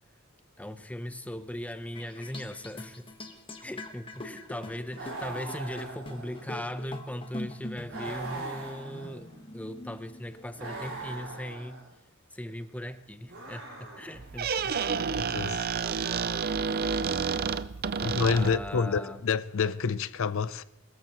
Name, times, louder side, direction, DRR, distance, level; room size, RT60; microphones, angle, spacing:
voice 1, 0.6-3.0 3.6-11.8 12.3-14.7 17.2-17.4 18.3-19.2, left 1 dB, 5° left, 0.7 m, -39 dB
sound 1, 1.9-11.4, left 1 dB, 25° left, 1.3 m, -44 dB
sound 2, 4.9-6.7 7.9-9.4 10.5-11.9 13.3-14.4, right 3 dB, 65° right, 4.6 m, -41 dB
Squeak, 14.2-18.8, right 5 dB, 45° right, 0.5 m, -30 dB
voice 2, 15.2-15.7 18.0-20.6, left 5 dB, 65° left, 0.5 m, -28 dB
23.5 x 13.5 x 3.0 m
head